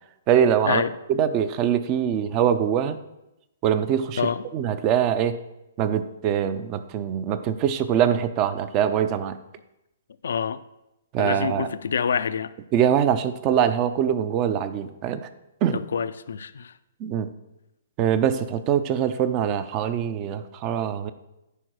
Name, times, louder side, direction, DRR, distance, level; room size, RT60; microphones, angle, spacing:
voice 1, 0.3-0.8 1.1-3.0 3.6-5.4 5.8-9.4 11.1-11.7 12.7-15.3 15.6-15.8 17.0-17.3 18.0-21.1, right 9 dB, 35° right, 12 dB, 0.7 m, -23 dB
voice 2, 10.2-10.6 11.2-12.5 15.7-16.7, left 6 dB, 70° left, 14 dB, 0.5 m, -26 dB
10.0 x 4.5 x 6.4 m, 0.92 s
hypercardioid pair, 125°, 0 cm